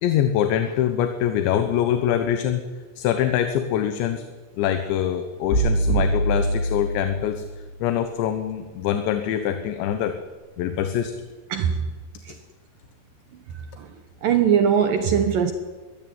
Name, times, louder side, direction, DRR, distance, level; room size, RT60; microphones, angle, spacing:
voice 1, 0.0-2.7 3.0-4.2 4.6-7.4 7.8-10.2 10.6-11.1, left 10 dB, 80° left, 8 dB, 3.3 m, -24 dB
sound 1, 5.5-7.6, right 1 dB, 60° left, 6.7 m, -23 dB
voice 2, 11.5-11.9 12.3-12.4 13.8-13.9 14.2-15.5, right 7 dB, 70° right, 7 dB, 2.3 m, -20 dB
21.5 x 16.0 x 9.4 m, 1.4 s
omnidirectional pair, 5.3 m